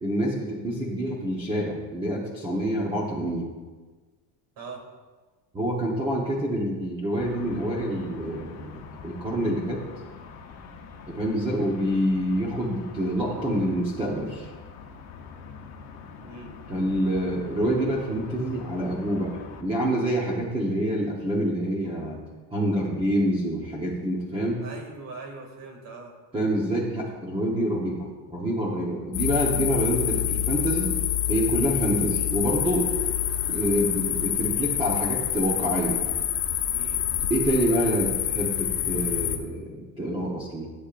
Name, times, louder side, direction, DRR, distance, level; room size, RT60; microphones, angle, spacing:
voice 1, 0.0-3.5 5.5-9.8 11.1-14.5 16.7-22.2 22.5-24.6 26.3-30.9 31.3-32.9 33.4-36.0 37.3-40.7, equal, 15° right, -4 dB, 1.1 m, -27 dB
sound 1, 7.1-19.6, left 5 dB, 40° left, 1.0 m, -44 dB
voice 2, 16.2-16.5 24.6-26.1 36.7-37.0, right 3 dB, 50° right, 2 dB, 2.4 m, -41 dB
sound 2, 29.1-39.4, left 11 dB, 60° left, 1.2 m, -27 dB
14.5 x 8.4 x 2.5 m, 1.3 s
cardioid pair, 160°, 42 cm